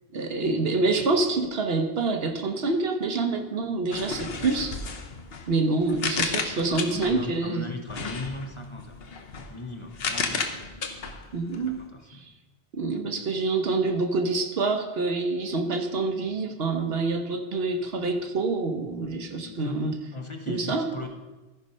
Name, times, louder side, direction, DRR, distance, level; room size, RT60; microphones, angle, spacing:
voice 1, 0.1-4.8 5.5-7.7 11.3-11.8 12.1-12.2 12.7-19.9 20.5-21.1, right 3 dB, 70° right, 6 dB, 1.1 m, -26 dB
sound 1, 3.9-7.3 7.9-11.8, left 4 dB, 70° left, 1.1 m, -33 dB
voice 2, 5.6-8.9 9.5-10.5 11.7-12.3 19.4-21.1, left 2 dB, 30° left, 4 dB, 0.8 m, -38 dB
13.5 x 5.3 x 5.4 m, 1.2 s
omnidirectional pair, 1.1 m